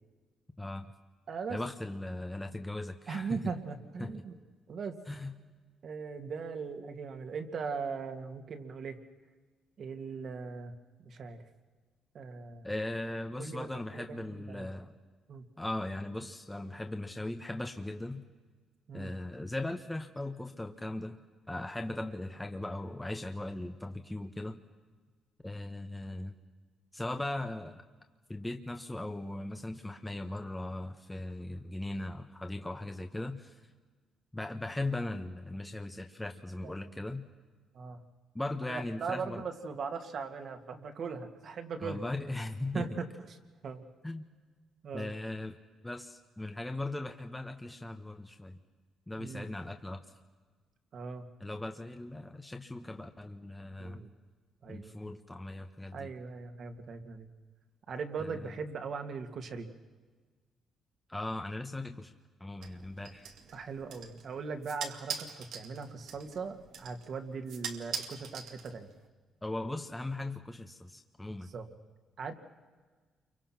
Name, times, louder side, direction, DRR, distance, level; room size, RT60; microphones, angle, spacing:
voice 1, 0.6-0.9 1.5-3.5 4.0-4.1 5.1-5.3 12.6-14.9 15.6-18.2 18.9-21.2 21.5-24.6 25.4-26.3 26.9-27.8 28.3-33.6 34.3-37.2 38.3-39.4 41.8-43.0 44.0-44.3 44.9-45.6 45.8-48.6 49.1-50.0 51.4-54.0 54.7-56.1 58.2-58.5 61.1-62.1 62.4-63.3 69.4-71.5, left 2 dB, 10° left, 5 dB, 1.2 m, -38 dB
voice 2, 1.3-1.6 3.1-4.4 4.7-4.9 5.8-9.0 9.8-10.7 11.0-11.4 12.1-12.7 13.4-13.7 13.9-14.7 15.3-15.5 18.9-19.1 36.6-36.7 37.7-38.0 38.7-42.0 42.7-43.9 44.8-45.1 49.2-49.5 50.9-51.3 53.8-54.1 54.6-55.1 55.9-57.3 57.9-59.7 63.5-68.9 71.5-71.7 72.2-72.3, right 5 dB, 55° right, 5 dB, 2.3 m, -39 dB
sound 1, 62.6-69.1, right 7 dB, 80° right, 2.3 m, -43 dB
28.5 x 24.5 x 6.0 m, 1.4 s
cardioid pair, 90°, 0 cm